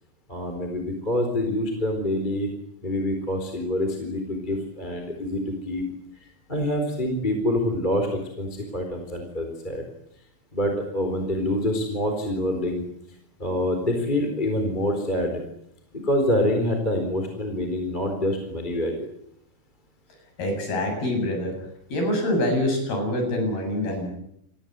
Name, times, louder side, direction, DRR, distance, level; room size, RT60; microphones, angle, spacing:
voice 1, 0.3-2.5 2.8-5.8 6.5-9.8 10.5-12.8 13.4-15.4 16.0-18.9, left 1 dB, 10° left, 4 dB, 3.8 m, -26 dB
voice 2, 20.4-21.5 21.9-24.1, left 1 dB, 70° left, 4 dB, 9.5 m, -25 dB
28.0 x 20.0 x 8.1 m, 0.75 s
omnidirectional pair, 4.5 m